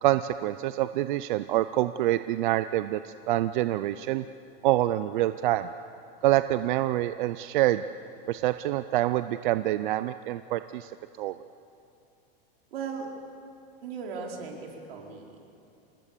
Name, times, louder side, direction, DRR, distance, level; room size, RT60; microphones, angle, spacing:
voice 1, 0.0-4.2 4.6-5.7 6.2-7.8 8.3-10.9 11.2-11.4, right 15 dB, 60° right, 12 dB, 0.6 m, -26 dB
voice 2, 12.7-13.1 13.8-15.3, right 5 dB, 90° right, 0 dB, 4.5 m, -37 dB
27.0 x 20.0 x 6.8 m, 2.8 s
supercardioid pair, 170°, 29 cm